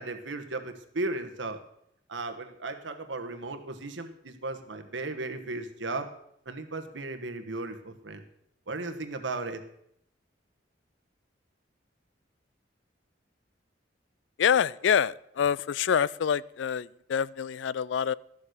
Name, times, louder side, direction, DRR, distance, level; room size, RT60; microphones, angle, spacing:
voice 1, 0.0-1.6 2.1-6.1 6.4-8.2 8.7-9.6, right 2 dB, 80° right, 1.3 m, -35 dB
voice 2, 14.4-18.1, left 8 dB, 75° left, 0.3 m, -26 dB
13.0 x 7.1 x 6.6 m
head